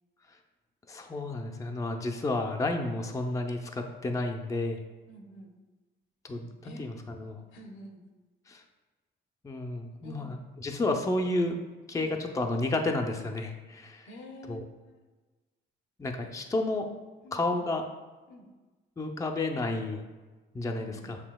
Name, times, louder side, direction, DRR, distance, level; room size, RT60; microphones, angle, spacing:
voice 1, 0.9-4.8 6.2-7.4 8.5-8.6 9.4-11.6 11.9-14.1 14.5-14.6 16.0-16.9 17.3-17.9 19.0-20.1 20.5-21.2, left 2 dB, 15° left, 4 dB, 0.4 m, -31 dB
voice 2, 5.1-5.5 6.6-6.9 7.5-8.0 10.0-10.3 12.0-12.2 14.0-15.0 17.2-17.7 18.3-18.5 20.7-21.1, equal, 90° left, 2 dB, 0.8 m, -48 dB
7.1 x 2.7 x 2.2 m, 1.2 s
cardioid pair, 90°, 20 cm